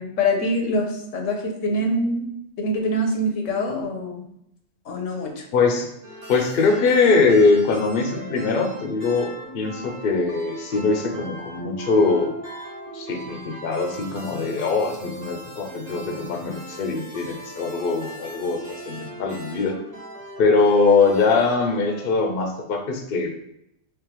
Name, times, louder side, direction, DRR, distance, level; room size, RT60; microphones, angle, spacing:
voice 1, 0.0-2.3 2.6-4.3 4.9-5.4, left 1 dB, 80° left, 3 dB, 1.1 m, -24 dB
voice 2, 5.5-5.9 6.3-9.3 9.5-12.3 12.9-19.8 20.4-23.3, left 4 dB, 55° left, 3 dB, 0.7 m, -21 dB
sound 1, 6.0-22.6, right 1 dB, 35° right, 1.0 m, -39 dB
3.6 x 3.1 x 3.0 m, 0.79 s
omnidirectional pair, 1.3 m